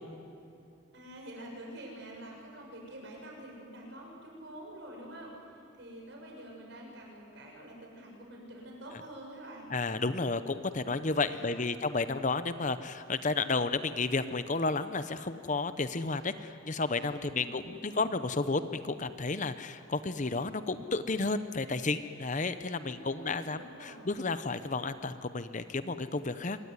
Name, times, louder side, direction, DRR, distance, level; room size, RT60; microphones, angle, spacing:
voice 1, 0.9-9.7 11.3-11.9 17.1-18.0 22.7-24.1, right 1 dB, 55° right, -1 dB, 7.3 m, -47 dB
voice 2, 9.7-26.6, left 3 dB, 35° left, 12 dB, 0.8 m, -32 dB
25.5 x 22.0 x 9.7 m, 2.6 s
head